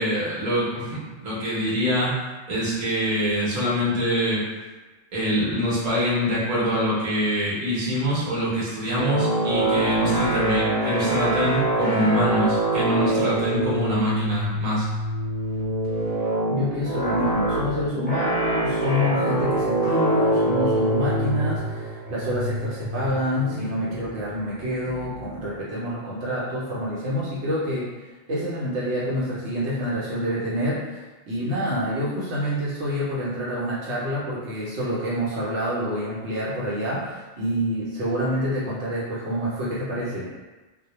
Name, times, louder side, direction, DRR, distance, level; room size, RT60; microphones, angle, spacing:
voice 1, 0.0-4.5 5.1-14.9, equal, 40° right, -7 dB, 0.7 m, -24 dB
sound 1, 8.9-25.5, right 1 dB, 10° left, 0.4 m, -25 dB
voice 2, 16.5-27.9 28.3-31.0 31.3-40.3, equal, 70° right, -7 dB, 0.8 m, -27 dB
2.1 x 2.1 x 2.8 m, 1.2 s
omnidirectional pair, 1.3 m